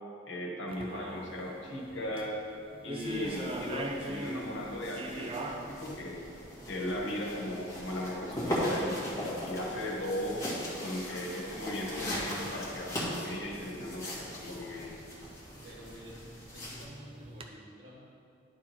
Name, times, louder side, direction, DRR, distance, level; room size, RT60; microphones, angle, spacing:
voice 1, 0.3-2.4 2.8-6.2 6.7-10.4 10.8-14.9, left 1 dB, 70° left, -3 dB, 1.4 m, -37 dB
sound 1, 0.7-17.5, right 1 dB, 30° right, 0.5 m, -45 dB
sound 2, 3.0-16.8, equal, 15° left, 1.8 m, -39 dB
voice 2, 15.6-16.2 16.5-18.1, right 1 dB, 70° right, -5 dB, 1.9 m, -50 dB
11.0 x 3.7 x 4.5 m, 2.5 s
head